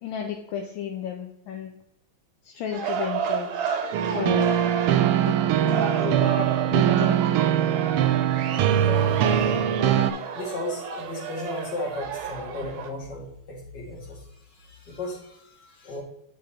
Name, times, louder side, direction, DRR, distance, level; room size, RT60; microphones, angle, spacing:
voice 1, 0.0-1.7 2.4-3.8 4.1-4.6 5.2-7.4, left 8 dB, 75° left, 2 dB, 1.4 m, -33 dB
sound 1, 2.7-12.9, right 7 dB, 60° right, 1.1 m, -31 dB
sound 2, 3.9-10.1, right 10 dB, 85° right, 1.5 m, -22 dB
voice 2, 8.6-9.8 10.3-16.0, left 1 dB, 55° left, -1 dB, 2.4 m, -35 dB
9.5 x 3.8 x 4.2 m, 0.80 s
omnidirectional pair, 2.4 m